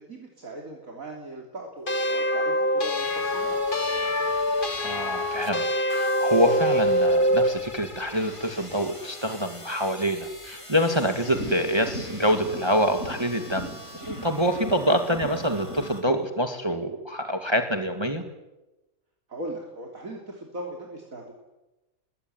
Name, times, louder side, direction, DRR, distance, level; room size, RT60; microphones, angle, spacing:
voice 1, 0.0-3.6 14.6-14.7 19.3-21.3, right 1 dB, 75° right, 0 dB, 3.7 m, -39 dB
sound 1, 1.9-7.6, equal, 35° left, 1.9 m, -24 dB
sound 2, 3.0-16.0, left 1 dB, 20° left, 3.0 m, -44 dB
voice 2, 4.8-5.6 5.9-13.7 14.0-18.2, equal, 20° right, 6 dB, 2.2 m, -26 dB
sound 3, 11.1-16.0, equal, 55° left, 5.9 m, -39 dB
25.0 x 22.0 x 9.5 m, 1.0 s
omnidirectional pair, 1.5 m